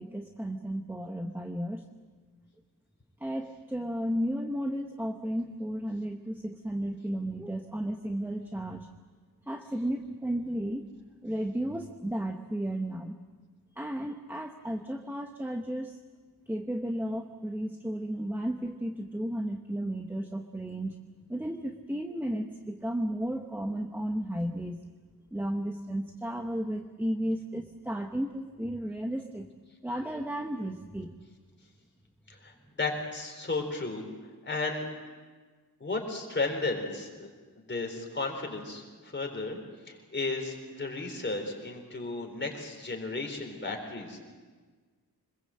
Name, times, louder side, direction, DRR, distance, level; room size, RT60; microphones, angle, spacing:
voice 1, 0.0-1.8 3.2-8.9 9.5-10.9 11.2-13.2 13.8-16.0 16.5-21.0 21.3-24.8 25.3-29.5 29.8-31.2, right 1 dB, 5° right, 5 dB, 1.0 m, -33 dB
voice 2, 32.3-34.0 34.5-34.9 35.8-37.3 37.7-39.6 39.9-44.2, left 3 dB, 30° left, 2 dB, 4.0 m, -34 dB
26.0 x 21.5 x 7.7 m, 1.5 s
wide cardioid pair, 160°, 38 cm